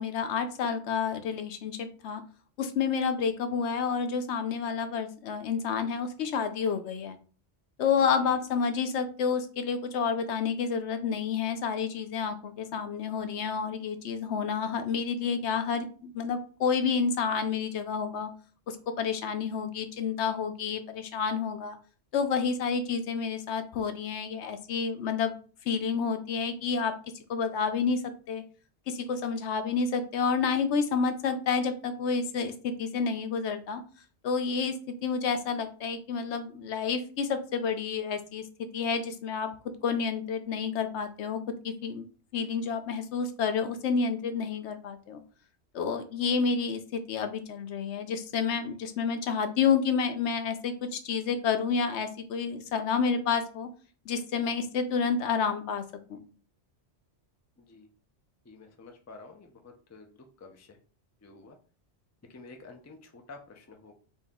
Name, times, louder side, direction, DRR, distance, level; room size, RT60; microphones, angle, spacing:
voice 1, 0.0-2.2 2.6-7.2 7.8-18.3 18.7-21.8 22.1-25.3 25.7-26.9 27.3-28.0 28.3-28.4 28.9-33.8 34.2-39.5 39.8-41.4 41.6-42.0 42.3-45.2 45.7-53.7 54.1-55.8 56.1-56.2, left 6 dB, 75° left, 8 dB, 0.9 m, -29 dB
voice 2, 8.0-8.4 57.7-57.9 58.5-60.8 61.2-61.6 62.3-63.9, left 3 dB, 20° left, 4 dB, 0.4 m, -50 dB
4.1 x 2.8 x 3.6 m, 0.38 s
omnidirectional pair, 1.2 m